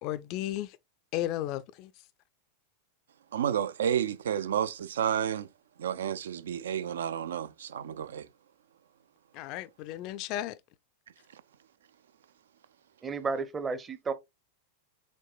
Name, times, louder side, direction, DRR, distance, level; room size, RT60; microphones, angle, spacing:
voice 1, 0.0-0.8 1.1-1.9 9.3-10.6, left 13 dB, 40° left, 0.4 m, -34 dB
voice 2, 3.3-5.5 5.8-8.3 11.3-11.4, right 9 dB, 65° right, 0.4 m, -31 dB
voice 3, 13.0-14.1, right 4 dB, 20° right, 0.7 m, -32 dB
5.3 x 3.5 x 2.4 m
figure-of-eight pair, 90°, 0 cm